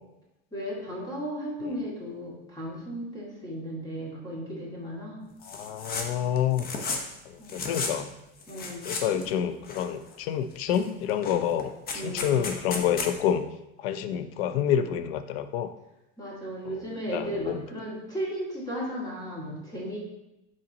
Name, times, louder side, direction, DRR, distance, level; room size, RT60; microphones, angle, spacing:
voice 1, 0.5-5.2 7.4-7.6 8.5-9.3 11.9-12.3 16.2-20.0, equal, 15° left, -5 dB, 2.2 m, -35 dB
sound 1, 5.4-6.1 6.4-7.1 7.4-8.0 8.4-9.3 9.6-10.2 10.7-10.8 11.1-13.1, left 4 dB, 30° left, 0.9 m, -34 dB
voice 2, 5.5-6.7 7.3-8.1 8.9-13.4 13.8-15.7 16.7-16.8 17.1-17.6, left 9 dB, 80° left, 11 dB, 0.6 m, -28 dB
5.9 x 4.1 x 4.0 m, 0.91 s
supercardioid pair, 130°, 30 cm